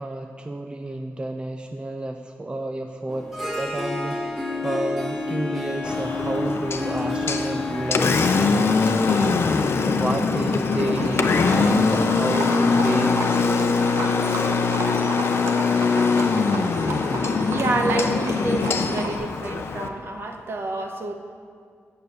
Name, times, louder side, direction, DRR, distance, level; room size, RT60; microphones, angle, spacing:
voice 1, 0.0-3.3 3.6-13.8, right 1 dB, 20° right, 5 dB, 0.5 m, -30 dB
Harp, 3.1-10.2, left 2 dB, ahead, 1.6 m, -30 dB
Engine, 5.8-19.9, left 4 dB, 55° left, 0.6 m, -22 dB
Livestock farm animals working animals, 10.5-19.2, right 3 dB, 75° right, 1.3 m, -33 dB
voice 2, 17.5-21.1, right 2 dB, 50° right, 4 dB, 1.0 m, -28 dB
9.0 x 6.8 x 7.9 m, 2.1 s
wide cardioid pair, 150°, 5 cm